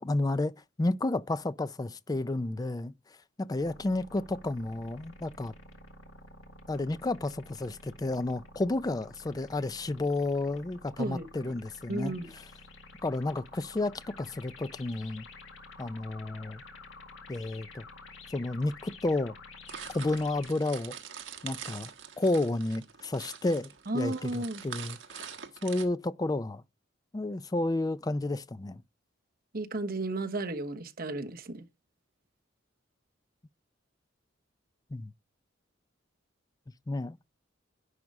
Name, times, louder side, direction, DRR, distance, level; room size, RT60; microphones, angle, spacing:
voice 1, 0.0-0.5 0.8-2.9 3.4-5.5 6.7-12.4 13.0-15.3 15.8-16.6 17.3-17.8 18.3-19.4 19.9-21.0 21.4-21.9 22.2-25.4 25.6-26.6 27.1-28.8 34.9-35.1 36.9-37.2, left 2 dB, 20° left, 0.4 m, -31 dB
sound 1, 3.6-20.5, left 3 dB, 85° left, 2.0 m, -50 dB
voice 2, 11.0-11.5 11.9-12.3 23.9-24.6 29.5-31.7, right 2 dB, 50° right, 1.1 m, -34 dB
sound 2, 19.7-25.8, right 8 dB, 70° right, 1.3 m, -44 dB
10.5 x 4.8 x 5.3 m
head